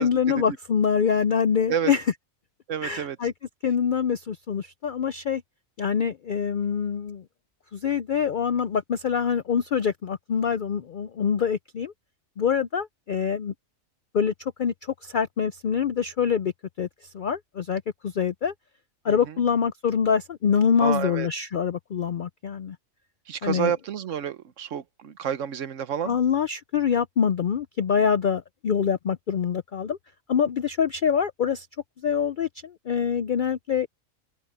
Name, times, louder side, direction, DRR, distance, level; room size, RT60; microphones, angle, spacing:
voice 1, 0.0-2.1 2.8-3.3 3.6-5.4 5.8-7.2 7.7-11.9 12.4-13.5 14.1-16.5 16.8-18.5 19.0-22.8 23.4-23.7 26.0-30.0 30.3-31.7 32.0-33.9, left 7 dB, 65° left, 0.5 m, -25 dB
voice 2, 2.7-3.2 19.1-19.2 20.8-21.3 23.3-26.2, right 8 dB, 65° right, 1.2 m, -29 dB
open air
omnidirectional pair, 1.4 m